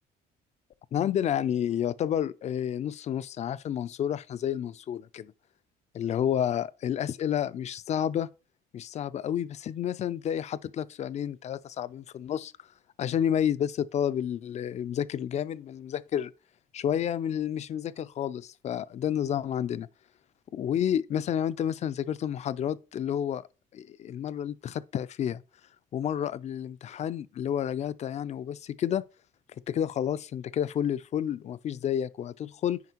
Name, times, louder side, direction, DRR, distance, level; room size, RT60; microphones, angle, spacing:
voice 1, 0.9-5.3 5.9-8.3 8.7-12.5 13.0-16.3 16.7-19.9 20.5-23.4 23.7-25.4 25.9-29.0 29.7-32.8, left 9 dB, 40° left, 0.4 m, -30 dB
9.4 x 4.9 x 2.9 m
cardioid pair, 110°, 17 cm